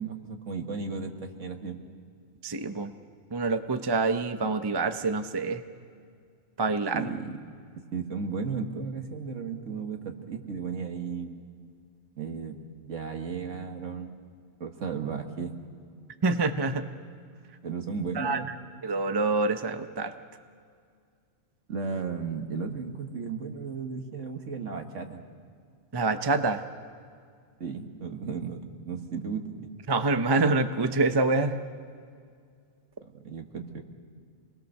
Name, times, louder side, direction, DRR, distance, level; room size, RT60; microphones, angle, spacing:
voice 1, 0.0-1.8 6.9-7.4 7.9-11.5 12.2-12.6 12.8-14.1 14.6-15.6 17.6-18.5 21.7-25.2 27.6-28.6 28.9-29.7 33.0-33.8, right 5 dB, 65° right, 5 dB, 1.8 m, -34 dB
voice 2, 2.4-2.9 3.3-5.6 6.6-7.1 16.2-16.9 18.1-18.4 18.8-20.1 25.9-26.6 29.9-31.6, right 3 dB, 25° right, 9 dB, 0.6 m, -26 dB
26.5 x 20.5 x 6.6 m, 2.2 s
omnidirectional pair, 1.4 m